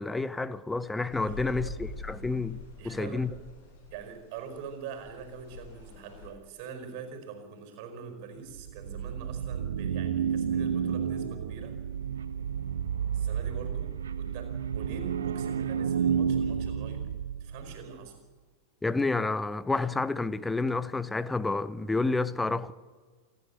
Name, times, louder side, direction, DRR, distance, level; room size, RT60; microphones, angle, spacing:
voice 1, 0.0-3.3 18.8-22.7, left 3 dB, 10° left, 0.7 m, -30 dB
sound 1, 1.1-6.3, left 3 dB, 50° left, 7.5 m, -45 dB
voice 2, 1.2-2.0 2.8-3.3 3.9-11.8 13.1-17.1 17.4-18.2, right 5 dB, 45° right, 4.9 m, -43 dB
sound 2, 8.5-17.8, right 7 dB, 65° right, 0.8 m, -31 dB
28.0 x 11.0 x 8.4 m
figure-of-eight pair, 90°, 0 cm